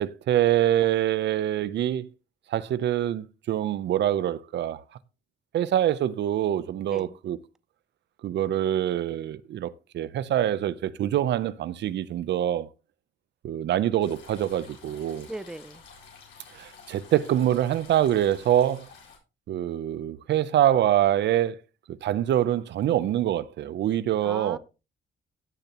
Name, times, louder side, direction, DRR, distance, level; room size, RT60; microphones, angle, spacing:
voice 1, 0.0-2.1 2.5-4.8 5.5-7.4 8.2-12.7 13.4-15.3 16.5-18.9 19.5-21.6 22.0-24.6, right 11 dB, 65° right, 0.6 m, -25 dB
sound 1, 14.0-19.2, left 5 dB, 70° left, 4.4 m, -51 dB
voice 2, 15.3-15.8 24.2-24.6, right 2 dB, 5° right, 0.4 m, -38 dB
16.0 x 6.8 x 2.9 m
cardioid pair, 160°, 20 cm